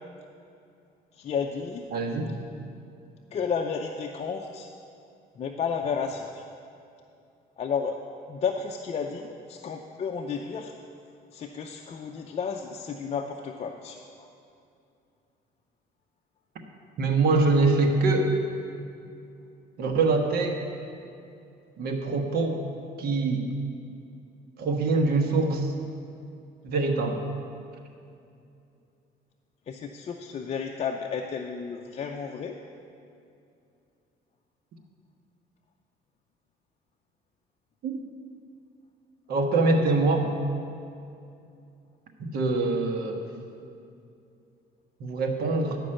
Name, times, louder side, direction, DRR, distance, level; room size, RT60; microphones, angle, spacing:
voice 1, 1.1-1.9 3.3-4.7 5.3-6.4 7.6-8.0 8.3-10.7 11.3-14.3 29.7-32.6, left 6 dB, 40° left, 2 dB, 0.6 m, -32 dB
voice 2, 1.9-2.3 17.0-18.3 19.8-20.6 21.8-22.6 23.0-23.5 24.6-25.7 26.6-27.2 37.8-38.0 39.3-40.3 42.2-43.2 45.0-45.8, right 3 dB, 65° right, 3 dB, 1.3 m, -24 dB
11.0 x 5.2 x 7.6 m, 2.6 s
cardioid pair, 110°, 17 cm